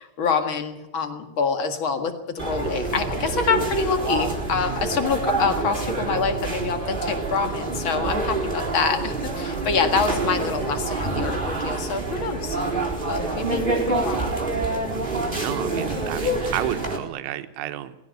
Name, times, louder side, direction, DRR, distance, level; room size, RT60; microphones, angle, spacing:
voice 1, 0.0-12.6 13.0-14.2, left 5 dB, 60° left, 7 dB, 1.2 m, -26 dB
sound 1, 2.4-17.0, right 3 dB, 10° right, 3.7 m, -27 dB
voice 2, 15.4-18.0, right 13 dB, 90° right, 10 dB, 3.5 m, -31 dB
20.0 x 17.0 x 9.1 m, 0.90 s
omnidirectional pair, 5.2 m